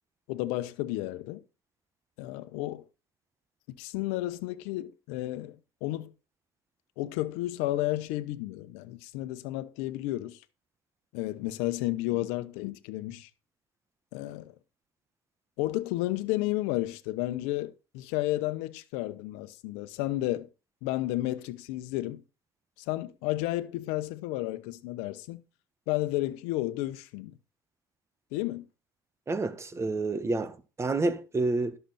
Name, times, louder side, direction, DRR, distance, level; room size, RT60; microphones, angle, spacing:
voice 1, 0.3-1.4 2.2-2.8 3.8-5.6 5.8-6.1 7.0-10.4 11.1-13.3 14.1-14.5 15.6-20.5 20.8-22.2 22.9-25.4 25.9-27.4 28.3-28.7, left 17 dB, 85° left, 0.9 m, -32 dB
voice 2, 29.3-31.8, right 3 dB, 25° right, 1.3 m, -29 dB
11.5 x 6.9 x 4.2 m
supercardioid pair, 80°, 11 cm